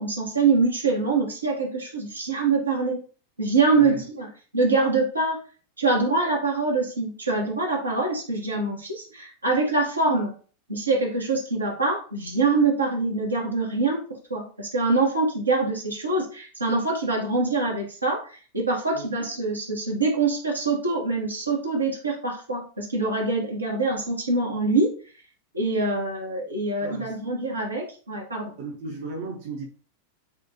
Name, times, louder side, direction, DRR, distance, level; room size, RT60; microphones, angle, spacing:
voice 1, 0.0-3.0 3.4-4.3 4.5-5.4 5.8-10.3 10.7-14.0 14.3-24.9 25.5-28.5, right 3 dB, 80° right, 1.3 m, -24 dB
voice 2, 26.8-27.2 28.6-29.7, right 3 dB, 50° right, 0.9 m, -35 dB
6.5 x 2.5 x 2.8 m
figure-of-eight pair, 90°, 0 cm